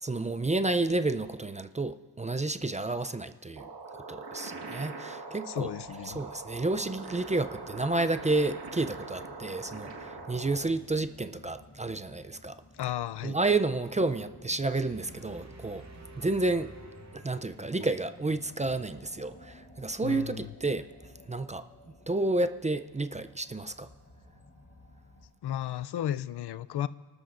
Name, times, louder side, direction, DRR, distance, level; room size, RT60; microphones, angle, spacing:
voice 1, 0.0-3.7 4.1-5.7 6.1-12.6 13.2-15.8 16.2-16.7 17.1-20.8 21.3-21.6 22.1-23.9, right 2 dB, 20° right, 0.4 m, -30 dB
sound 1, 3.6-10.6, right 3 dB, 85° right, 1.7 m, -42 dB
voice 2, 5.5-6.2 12.8-13.4 20.0-20.5 25.4-26.9, left 11 dB, 75° left, 0.5 m, -34 dB
sound 2, 5.8-25.3, left 1 dB, 35° left, 3.1 m, -54 dB
sound 3, 14.8-18.0, right 3 dB, 40° right, 0.9 m, -50 dB
30.0 x 13.0 x 2.5 m
wide cardioid pair, 100°, 41 cm